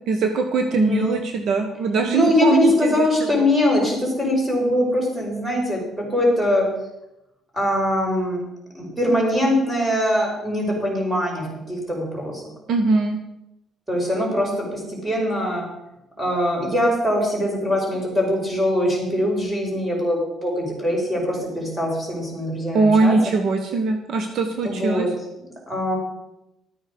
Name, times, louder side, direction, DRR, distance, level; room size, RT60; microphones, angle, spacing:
voice 1, 0.1-2.9 12.7-13.2 22.7-25.1, right 3 dB, 60° right, 5 dB, 1.4 m, -21 dB
voice 2, 0.7-1.2 2.1-6.7 7.5-8.4 8.7-12.4 13.9-15.6 16.2-23.1 24.6-25.1 25.4-25.9, left 1 dB, 10° right, -2 dB, 5.5 m, -22 dB
13.0 x 9.5 x 5.3 m, 0.90 s
cardioid pair, 125°, 0 cm